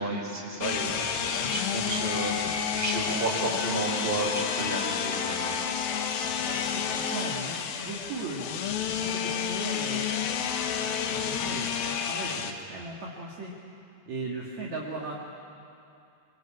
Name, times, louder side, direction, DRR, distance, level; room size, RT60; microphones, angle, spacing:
voice 1, 0.0-5.6, right 2 dB, 15° right, -2 dB, 5.1 m, -32 dB
sound 1, 0.6-12.5, left 7 dB, 75° left, 3.1 m, -30 dB
voice 2, 0.8-1.2 6.4-8.6 9.0-10.1 10.7-13.5 14.1-15.1, right 3 dB, 50° right, -3 dB, 3.2 m, -38 dB
26.0 x 24.5 x 8.8 m, 2.6 s
omnidirectional pair, 4.4 m